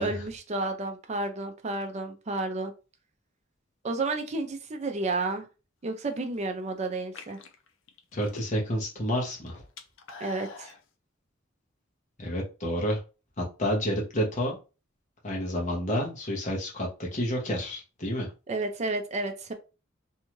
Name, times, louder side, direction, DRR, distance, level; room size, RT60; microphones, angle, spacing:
voice 1, 0.0-2.7 3.8-5.5 5.8-7.4 10.2-10.7 18.5-19.5, right 2 dB, 35° right, 6 dB, 0.5 m, -31 dB
sound 1, 6.0-6.4 7.0-8.8 9.1-10.8, left 4 dB, 70° left, 0.5 m, -45 dB
voice 2, 8.1-9.5 12.2-13.0 13.4-14.6 15.2-18.3, equal, 40° left, -1 dB, 0.9 m, -29 dB
2.7 x 2.3 x 3.0 m, 0.32 s
head